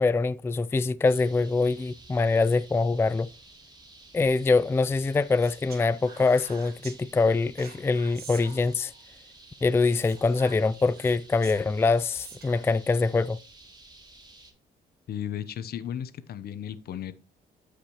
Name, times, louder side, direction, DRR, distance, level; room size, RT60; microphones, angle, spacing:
voice 1, 0.0-3.3 4.1-8.9 9.6-13.4, left 3 dB, 15° left, 0.3 m, -24 dB
sound 1, 1.0-14.5, right 2 dB, 25° right, 2.8 m, -52 dB
Speech, 5.4-7.0 7.6-9.0 9.8-12.7, right 6 dB, 65° right, 2.4 m, -48 dB
voice 2, 15.1-17.1, left 9 dB, 65° left, 0.8 m, -35 dB
13.5 x 5.1 x 3.0 m
cardioid pair, 75°, 17 cm